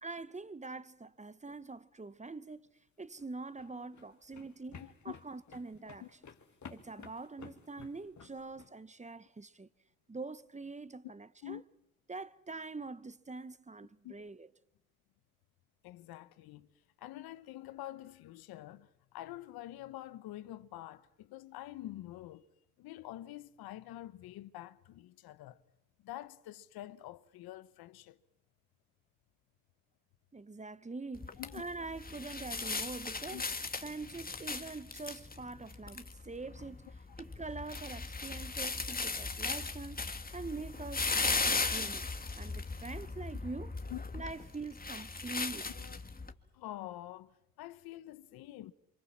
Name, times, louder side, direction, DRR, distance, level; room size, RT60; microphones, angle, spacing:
voice 1, 0.0-2.6 3.0-6.0 6.7-9.7 10.1-11.6 12.1-14.5 30.3-33.4 33.8-36.9 37.2-42.1 42.4-43.7 44.1-45.7, right 3 dB, 20° right, 1.1 m, -44 dB
sound 1, 3.0-8.7, left 6 dB, 50° left, 2.7 m, -53 dB
voice 2, 4.7-5.1 6.0-6.1 11.4-11.6 14.0-14.2 15.8-16.7 17.0-22.4 22.8-25.6 26.0-28.2 31.4-31.6 33.3-33.4 38.7-38.8 43.9-44.0 45.7-46.0 46.5-48.7, left 14 dB, 85° left, 1.1 m, -47 dB
sound 2, 31.1-46.3, left 3 dB, 25° left, 2.0 m, -37 dB
29.0 x 24.5 x 7.4 m
supercardioid pair, 65°, 36 cm